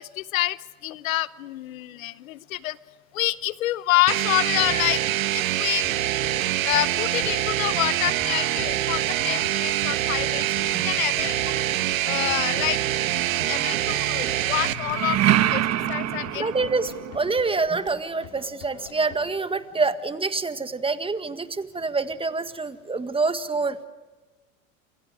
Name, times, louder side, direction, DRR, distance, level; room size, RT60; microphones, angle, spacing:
voice 1, 0.0-2.8 3.1-5.0 5.3-5.8 6.6-11.6 12.0-12.8 13.5-16.5, left 15 dB, 80° left, 18 dB, 0.9 m, -27 dB
sound 1, 4.1-14.7, right 14 dB, 80° right, 1.4 m, -25 dB
sound 2, 5.8-19.2, left 9 dB, 60° left, 4.1 m, -45 dB
sound 3, 12.4-13.2 14.5-17.3, right 12 dB, 40° right, 1.4 m, -25 dB
voice 2, 16.3-23.8, right 3 dB, 15° right, 10 dB, 1.7 m, -26 dB
29.0 x 27.5 x 4.9 m, 1.2 s
hypercardioid pair, 90°, 40 cm